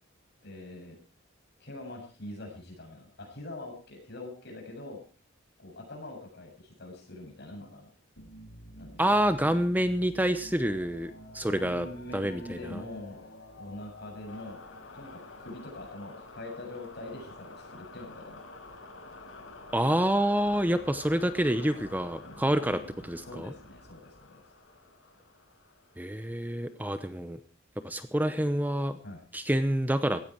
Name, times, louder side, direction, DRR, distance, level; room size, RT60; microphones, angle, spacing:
voice 1, 0.4-1.0 1.6-5.0 5.6-7.9 8.8-9.2 11.5-13.2 13.6-14.6 14.9-18.4 21.6-21.8 23.3-24.4 29.0-29.2, left 2 dB, 55° left, 2 dB, 7.4 m, -43 dB
sound 1, 8.2-26.6, left 2 dB, 85° left, 6.2 m, -49 dB
voice 2, 9.0-11.9 12.1-12.8 19.7-23.5 26.0-27.4 27.8-29.0 29.3-30.2, right 1 dB, 10° right, 11 dB, 0.8 m, -27 dB
17.5 x 15.0 x 4.6 m, 0.38 s
head